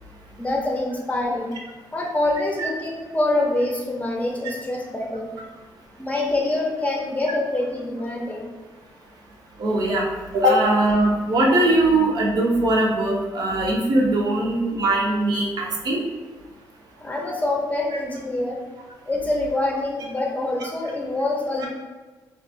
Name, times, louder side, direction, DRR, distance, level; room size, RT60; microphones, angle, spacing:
voice 1, 0.4-1.5 1.9-5.3 6.0-8.5 17.0-18.6 19.1-21.7, left 2 dB, 20° left, -1 dB, 0.6 m, -25 dB
voice 2, 9.6-10.1 10.3-16.0 21.6-21.7, right 1 dB, 65° right, -1 dB, 0.6 m, -20 dB
2.9 x 2.3 x 2.6 m, 1.3 s
cardioid pair, 95°, 8 cm